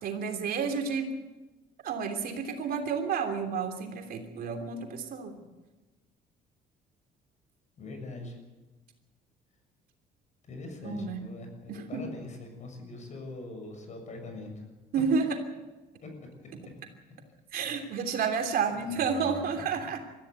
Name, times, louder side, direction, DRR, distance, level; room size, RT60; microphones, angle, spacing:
voice 1, 0.0-1.1 1.8-5.3 10.8-11.2 11.7-12.0 14.9-15.4 17.5-20.0, right 6 dB, 60° right, 5 dB, 3.1 m, -30 dB
voice 2, 7.8-8.4 10.4-14.6 14.9-15.0 16.0-16.1 18.8-19.9, left 2 dB, 45° left, 4 dB, 6.8 m, -42 dB
22.0 x 14.5 x 9.3 m, 1.2 s
cardioid pair, 110°, 17 cm